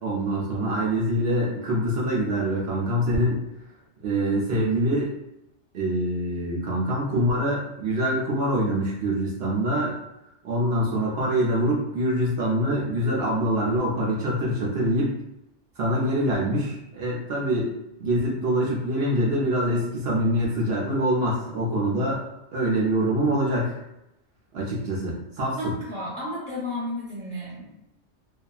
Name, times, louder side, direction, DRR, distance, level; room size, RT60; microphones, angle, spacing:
voice 1, 0.0-3.4 4.0-5.1 5.7-10.0 10.4-15.2 15.8-17.7 18.0-22.2 22.5-23.8 24.5-25.7, right 1 dB, 65° right, -4 dB, 0.8 m, -25 dB
voice 2, 25.6-27.7, left 1 dB, 5° left, -8 dB, 0.6 m, -32 dB
2.7 x 2.3 x 2.3 m, 0.89 s
omnidirectional pair, 1.2 m